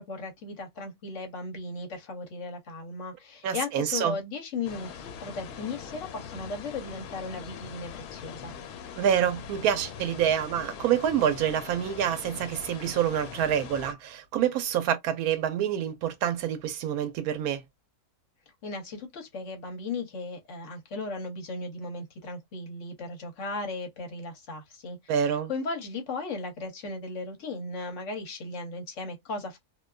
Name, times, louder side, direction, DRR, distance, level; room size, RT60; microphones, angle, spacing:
voice 1, 0.0-8.5 18.6-25.0 25.5-29.6, left 3 dB, 60° left, 1.0 m, -36 dB
voice 2, 3.4-4.2 9.0-17.6 25.1-25.5, right 9 dB, 80° right, 1.1 m, -27 dB
sound 1, 4.6-13.9, left 7 dB, 85° left, 1.1 m, -42 dB
2.5 x 2.3 x 2.2 m
omnidirectional pair, 1.5 m